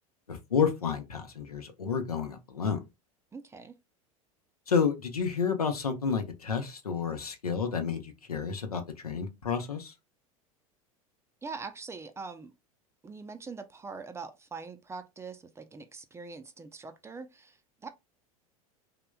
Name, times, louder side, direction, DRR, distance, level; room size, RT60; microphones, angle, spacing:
voice 1, 0.3-2.8 4.7-9.9, left 6 dB, 85° left, 0.7 m, -30 dB
voice 2, 3.3-3.7 11.4-12.5 13.0-17.9, right 4 dB, 15° right, 0.5 m, -43 dB
3.2 x 2.9 x 2.2 m
figure-of-eight pair, 80°, 19 cm